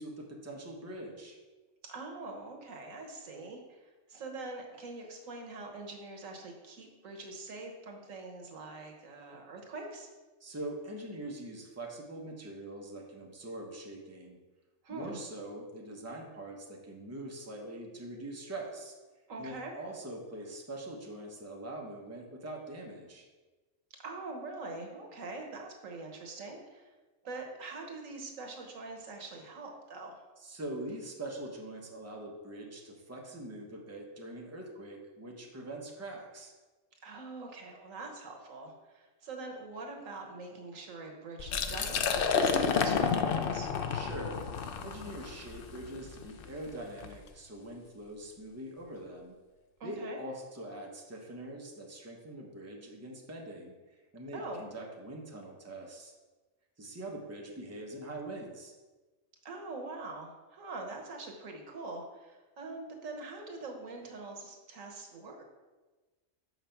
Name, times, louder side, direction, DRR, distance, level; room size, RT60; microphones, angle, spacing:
voice 1, 0.0-1.4 10.4-14.4 14.9-18.9 19.4-23.3 30.4-36.5 43.9-44.5 44.8-49.3 49.8-53.7 54.1-56.1 56.8-58.7, right 1 dB, 15° right, -1 dB, 1.0 m, -43 dB
voice 2, 1.8-10.1 14.8-15.2 19.3-19.8 24.0-26.9 27.2-30.2 37.0-43.7 49.8-50.2 54.3-54.6 59.4-65.4, right 3 dB, 85° right, 2 dB, 1.5 m, -44 dB
Liquid, 41.4-47.2, left 6 dB, 55° left, 0.7 m, -31 dB
5.9 x 5.9 x 5.7 m, 1.3 s
omnidirectional pair, 1.3 m